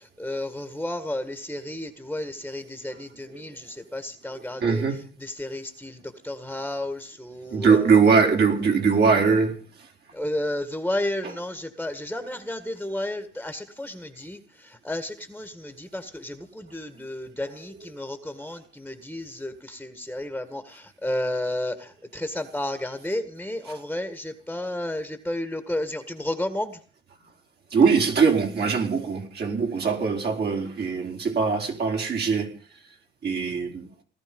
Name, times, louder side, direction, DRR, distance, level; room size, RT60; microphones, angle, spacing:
voice 1, 0.2-4.8 5.4-6.0 6.2-7.7 10.1-14.4 14.8-21.7 22.1-26.8, left 1 dB, 5° left, 9 dB, 1.8 m, -32 dB
voice 2, 2.9-3.4 4.3-5.0 7.5-9.9 11.2-11.4 12.2-12.3 17.4-17.9 22.8-22.9 23.6-23.8 27.7-32.5 33.2-33.9, right 5 dB, 55° right, 2 dB, 4.5 m, -22 dB
18.5 x 13.5 x 5.4 m, 0.41 s
cardioid pair, 90°, 20 cm